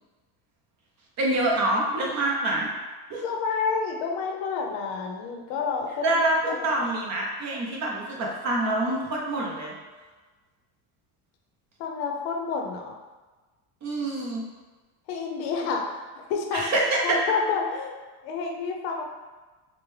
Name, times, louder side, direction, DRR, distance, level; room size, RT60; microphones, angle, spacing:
voice 1, 1.2-2.7 3.1-3.2 6.0-9.7 13.8-14.4 16.5-17.2, right 2 dB, 35° right, -2 dB, 0.7 m, -26 dB
voice 2, 3.2-6.2 6.5-6.9 11.8-13.0 15.1-15.8 16.2-16.6 17.0-18.0 18.2-19.0, left 5 dB, 85° left, 2 dB, 0.8 m, -29 dB
4.9 x 2.2 x 3.2 m, 1.3 s
cardioid pair, 150°, 48 cm